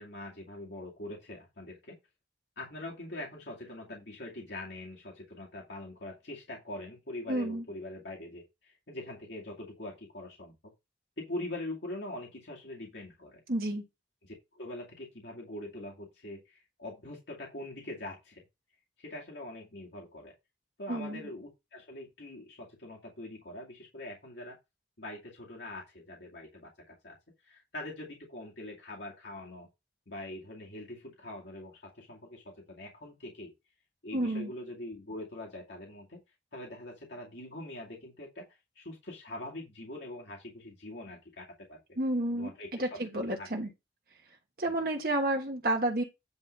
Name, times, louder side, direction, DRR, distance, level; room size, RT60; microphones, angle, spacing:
voice 1, 0.0-2.0 2.6-10.5 11.2-13.4 14.2-18.4 19.0-20.3 20.8-24.6 25.0-27.2 27.4-29.7 30.1-33.5 34.0-36.2 36.5-38.5 38.8-41.8 42.3-43.7, left 1 dB, 75° left, 2.3 m, -43 dB
voice 2, 7.3-7.6 13.5-13.8 20.9-21.2 34.1-34.5 42.0-42.5 42.8-43.7 44.6-46.0, right 1 dB, 55° right, 1.3 m, -30 dB
9.6 x 3.8 x 5.3 m
head